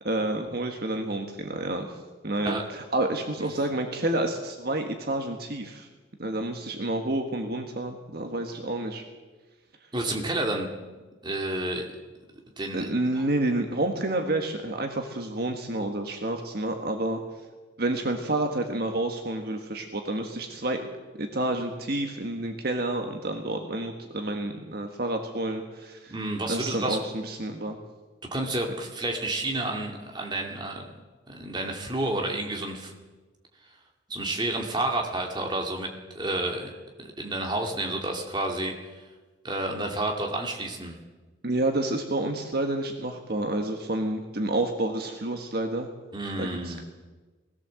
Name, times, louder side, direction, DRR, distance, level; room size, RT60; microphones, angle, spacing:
voice 1, 0.0-2.0 2.2-5.9 6.2-9.0 12.7-17.2 17.8-20.9 21.2-26.1 26.5-27.8 41.4-45.9 46.4-46.8, right 1 dB, 50° right, 4 dB, 1.6 m, -29 dB
voice 2, 9.9-10.7 11.2-11.9 12.6-12.9 26.1-27.0 28.3-30.9 31.3-32.9 34.1-36.7 37.0-38.7 39.4-41.0 46.1-46.8, right 2 dB, 20° right, 1 dB, 2.4 m, -30 dB
20.0 x 16.5 x 7.7 m, 1.3 s
head